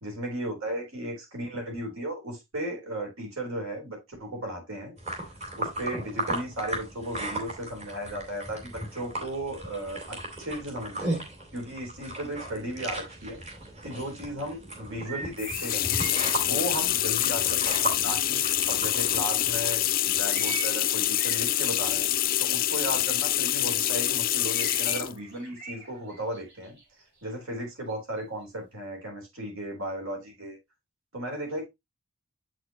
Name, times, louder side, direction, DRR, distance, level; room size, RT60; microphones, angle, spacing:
voice 1, 0.0-4.9 5.6-11.2 11.5-13.4 13.8-15.9 16.4-22.1 22.4-26.8 27.2-30.6 31.1-31.7, right 1 dB, 65° right, 2 dB, 3.5 m, -35 dB
sound 1, 5.0-20.0, right 1 dB, 30° right, 2.4 m, -36 dB
sound 2, 13.1-14.1 15.0-16.2 16.6-16.7 17.5-18.4 20.3-22.0 22.5-22.6 22.8-22.9 24.5-25.0 25.3-27.0 27.9-28.4, right 3 dB, 50° right, 3.4 m, -41 dB
sound 3, 15.4-25.2, left 13 dB, 40° left, 0.4 m, -26 dB
7.8 x 6.2 x 2.9 m, 0.20 s
head